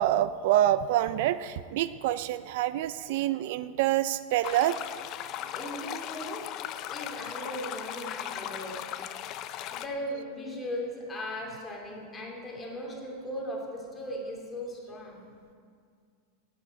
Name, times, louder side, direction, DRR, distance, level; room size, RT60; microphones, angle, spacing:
voice 1, 0.0-4.8, right 13 dB, 60° right, 14 dB, 0.4 m, -26 dB
sound 1, 4.4-9.9, left 11 dB, 35° left, 0.5 m, -38 dB
voice 2, 5.3-6.4 6.9-8.8 9.7-15.2, equal, 10° left, -2 dB, 2.5 m, -38 dB
11.0 x 8.6 x 8.4 m, 2.2 s
supercardioid pair, 160°, 0 cm